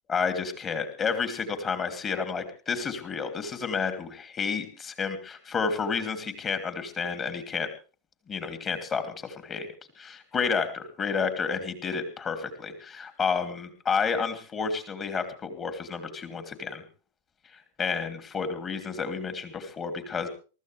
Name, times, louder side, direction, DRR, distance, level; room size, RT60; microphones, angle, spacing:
voice 1, 0.1-7.7 8.3-9.7 9.9-16.8 17.5-20.3, left 5 dB, 25° left, 8 dB, 2.9 m, -30 dB
23.5 x 14.5 x 3.4 m, 0.35 s
figure-of-eight pair, 90°, 0 cm